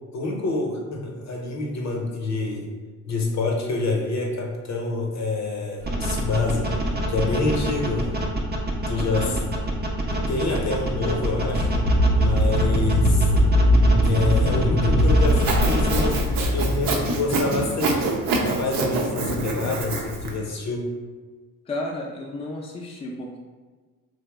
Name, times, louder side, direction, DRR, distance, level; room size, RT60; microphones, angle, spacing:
voice 1, 0.1-2.7 3.1-6.7 7.1-8.1 8.9-9.4 10.3-11.7 12.2-13.3 14.0-16.2 16.5-18.1 18.4-20.8, left 3 dB, 50° left, -1 dB, 0.8 m, -27 dB
sound 1, 5.8-16.2, right 1 dB, 25° right, 0.6 m, -26 dB
voice 2, 8.9-9.4 12.4-12.8 21.7-23.4, left 2 dB, 15° left, -2 dB, 0.5 m, -33 dB
sound 2, 11.3-17.6, equal, 85° left, 0.6 m, -20 dB
Sawing, 15.3-20.3, right 3 dB, 65° right, 0.6 m, -26 dB
2.8 x 2.0 x 3.4 m, 1.4 s
supercardioid pair, 60°, 37 cm